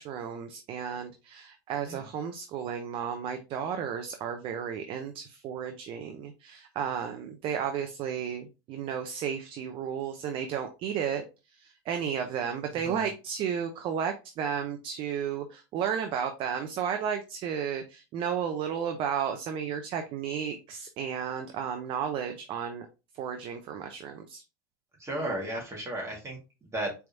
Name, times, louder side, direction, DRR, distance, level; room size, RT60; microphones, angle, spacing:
voice 1, 0.0-11.2 11.6-22.9 23.2-24.4, right 8 dB, 45° right, 6 dB, 0.7 m, -33 dB
voice 2, 12.7-13.1 25.0-26.9, right 1 dB, 25° right, 0 dB, 1.8 m, -35 dB
4.4 x 3.5 x 2.6 m, 0.29 s
hypercardioid pair, 100°, 12 cm